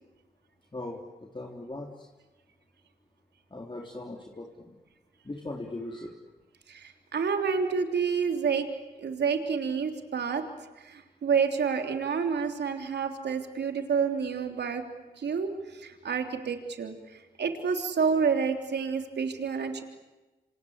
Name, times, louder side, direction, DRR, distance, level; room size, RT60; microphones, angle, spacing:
voice 1, 0.7-2.1 3.5-4.7 5.2-6.1, left 2 dB, 30° left, 1 dB, 3.7 m, -39 dB
voice 2, 6.7-8.7 9.0-10.4 10.8-14.8 15.2-19.8, right 6 dB, 80° right, 5 dB, 3.4 m, -29 dB
27.5 x 26.5 x 8.2 m, 1.1 s
cardioid pair, 45°, 17 cm